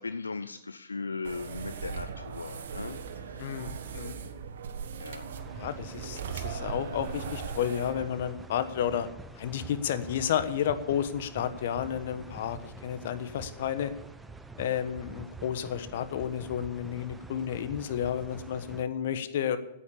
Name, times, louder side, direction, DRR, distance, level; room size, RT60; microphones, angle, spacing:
voice 1, 0.0-3.4 5.0-5.3, left 4 dB, 90° left, 11 dB, 0.5 m, -38 dB
sound 1, 1.2-8.0, right 6 dB, 70° right, 1.3 m, -39 dB
voice 2, 3.4-4.2 5.6-9.1 9.3-13.9 14.6-19.6, left 9 dB, 60° left, 11 dB, 1.2 m, -31 dB
sound 2, 5.4-18.8, right 3 dB, 10° right, 0.8 m, -46 dB
9.9 x 8.6 x 9.8 m, 0.88 s
hypercardioid pair, 110°, 0 cm